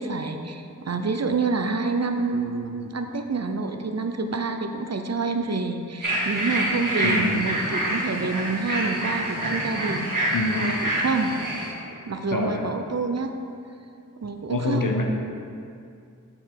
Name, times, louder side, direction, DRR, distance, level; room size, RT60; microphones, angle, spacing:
voice 1, 0.0-10.1 10.5-11.4 12.1-13.3 14.2-14.9, right 4 dB, 55° right, 6 dB, 0.6 m, -27 dB
sound 1, 6.0-11.7, right 1 dB, 75° right, 1.7 m, -27 dB
voice 2, 7.0-7.4 10.3-10.7 12.3-12.7 14.5-15.0, left 3 dB, 85° left, 2 dB, 0.8 m, -25 dB
7.1 x 4.9 x 4.7 m, 2.5 s
wide cardioid pair, 40°, 32 cm